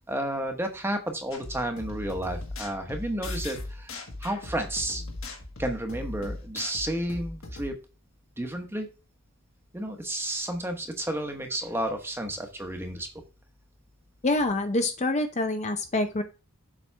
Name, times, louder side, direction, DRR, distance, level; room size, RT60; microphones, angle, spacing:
voice 1, 0.0-5.0 5.6-7.8 8.4-8.9 9.7-13.1, right 1 dB, 10° right, 5 dB, 1.1 m, -32 dB
sound 1, 1.3-7.7, left 2 dB, 60° left, 1.6 m, -38 dB
voice 2, 14.2-16.2, left 2 dB, 30° left, 7 dB, 0.6 m, -26 dB
7.4 x 5.8 x 3.3 m, 0.32 s
head